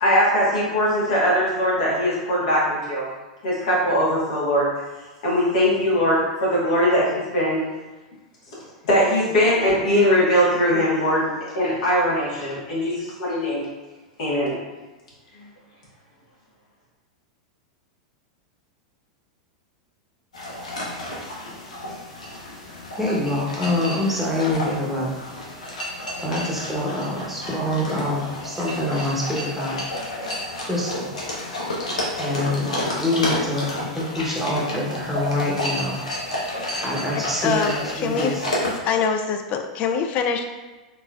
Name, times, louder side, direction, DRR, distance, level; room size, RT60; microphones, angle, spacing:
voice 1, 0.0-3.0 3.4-4.7 5.2-7.6 8.9-13.6 14.2-14.5, equal, 65° left, -6 dB, 1.4 m, -21 dB
sound 1, 20.3-38.8, left 1 dB, 85° left, 0.7 m, -31 dB
voice 2, 23.0-25.1 26.2-29.8 30.6-31.1 32.2-36.0 36.8-38.4, left 1 dB, 5° right, -5 dB, 1.0 m, -25 dB
voice 3, 37.4-37.7 38.0-38.3 38.8-40.5, left 6 dB, 40° left, 5 dB, 0.4 m, -23 dB
3.8 x 2.5 x 2.3 m, 1.2 s
hypercardioid pair, 100°, 4 cm